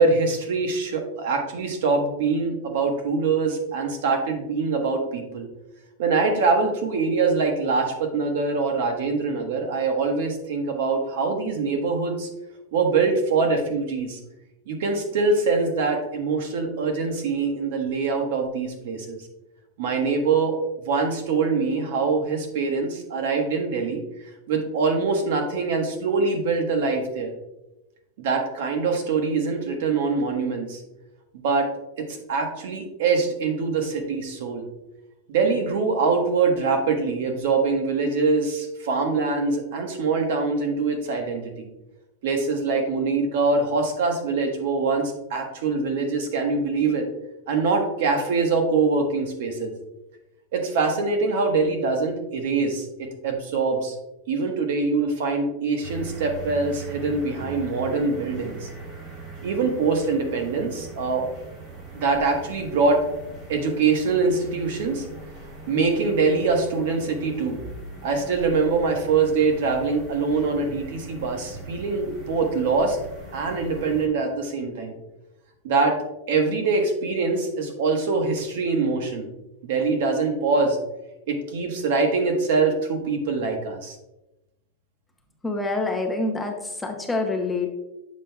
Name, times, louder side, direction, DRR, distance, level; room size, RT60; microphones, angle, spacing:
voice 1, 0.0-5.5 6.0-12.3 12.7-14.2 14.7-19.2 19.8-20.6 20.8-24.0 24.5-27.3 28.2-30.8 31.3-31.7 32.0-34.6 35.3-41.4 42.2-47.0 47.5-49.7 50.5-53.9 54.3-58.7 59.4-61.3 61.9-63.0 63.5-65.1 65.7-67.6 68.0-73.0 73.3-74.9 75.6-76.0 76.3-79.3 79.6-80.8 81.3-84.0, right 4 dB, 70° right, 4 dB, 1.2 m, -24 dB
sound 1, 55.8-74.1, right 2 dB, 35° right, 1.6 m, -40 dB
voice 2, 85.4-87.7, left 3 dB, 5° left, 2 dB, 0.6 m, -26 dB
7.4 x 6.1 x 2.3 m, 0.94 s
supercardioid pair, 160°, 0 cm